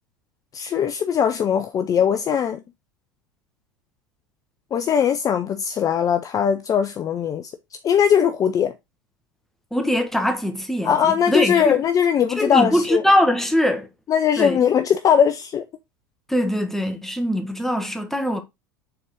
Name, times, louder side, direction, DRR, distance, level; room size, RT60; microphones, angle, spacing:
voice 1, 0.5-2.6 4.7-7.5 7.8-8.7 10.8-13.0 14.1-15.6, left 8 dB, 30° left, 0.6 m, -20 dB
voice 2, 9.7-11.8 12.4-13.9 14.4-14.6 16.3-18.4, equal, 5° left, 1.4 m, -22 dB
6.7 x 4.1 x 3.6 m
hypercardioid pair, 90°, 11 cm